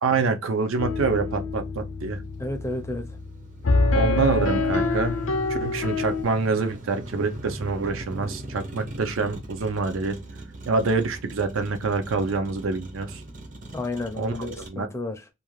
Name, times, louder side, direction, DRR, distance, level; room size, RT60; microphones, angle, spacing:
voice 1, 0.0-2.2 3.9-5.2 5.5-10.2 10.7-13.2 14.2-14.9, right 4 dB, 80° right, 0.5 m, -26 dB
Motor vehicle (road), 0.6-14.7, right 1 dB, 40° right, 0.6 m, -41 dB
sound 1, 0.8-6.2, left 3 dB, 75° left, 0.5 m, -25 dB
voice 2, 2.4-3.2 13.7-15.3, left 2 dB, 15° left, 0.4 m, -32 dB
2.4 x 2.3 x 3.0 m
head